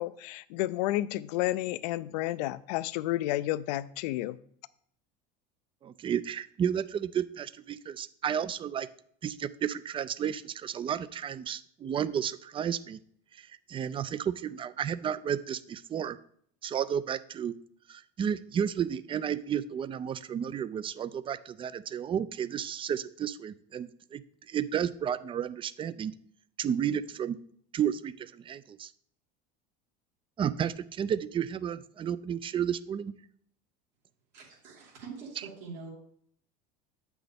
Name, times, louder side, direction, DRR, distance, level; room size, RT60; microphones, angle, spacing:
voice 1, 0.0-4.4, left 16 dB, 85° left, 17 dB, 0.4 m, -31 dB
voice 2, 5.8-8.9 9.2-13.0 13.7-16.2 16.6-17.5 17.9-24.2 24.5-26.1 26.6-27.4 27.7-28.9 30.4-33.1, right 8 dB, 25° right, 17 dB, 0.4 m, -32 dB
voice 3, 34.3-35.9, right 5 dB, 60° right, -4 dB, 2.6 m, -44 dB
8.5 x 6.1 x 3.5 m, 0.64 s
supercardioid pair, 115°, 21 cm